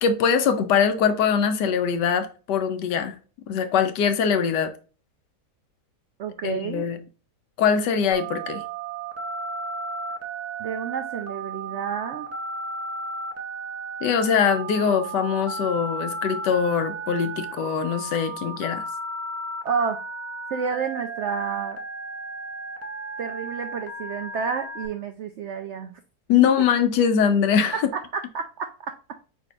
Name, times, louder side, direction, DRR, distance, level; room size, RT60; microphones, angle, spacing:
voice 1, 0.0-3.1 3.5-4.7 6.4-7.0 7.6-8.6 14.0-18.8 26.3-27.8, left 7 dB, 90° left, 1.3 m, -22 dB
voice 2, 6.2-6.8 10.6-12.3 19.6-20.0 20.5-21.8 23.2-26.0 28.1-28.9, right 6 dB, 85° right, 0.6 m, -30 dB
Telephone, 8.1-24.9, right 3 dB, 20° right, 0.4 m, -34 dB
5.1 x 4.2 x 2.3 m
omnidirectional pair, 1.8 m